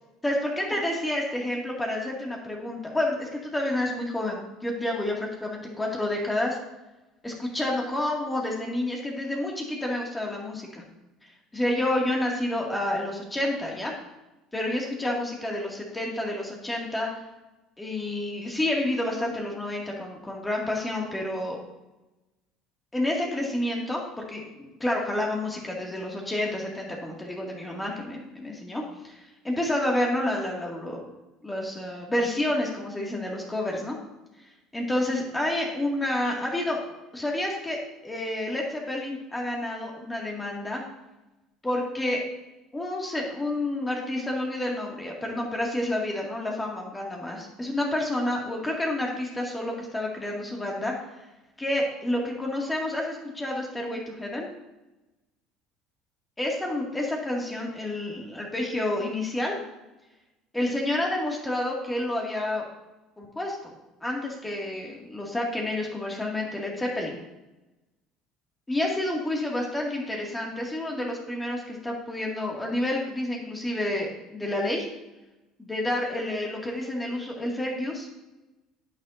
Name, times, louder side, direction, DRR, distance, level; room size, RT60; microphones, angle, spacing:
voice 1, 0.2-6.6 7.2-10.8 11.5-13.9 14.5-17.1 17.8-21.6 22.9-24.0 24.3-24.4 24.8-29.1 29.4-31.1 31.4-34.0 34.7-40.8 41.6-42.2 42.7-50.9 51.6-54.5 56.4-59.5 60.5-62.6 63.2-63.7 64.0-67.2 68.7-74.9 75.6-78.1, left 1 dB, 15° left, -1 dB, 2.2 m, -29 dB
10.5 x 6.6 x 2.7 m, 1.0 s
hypercardioid pair, 75°, 0 cm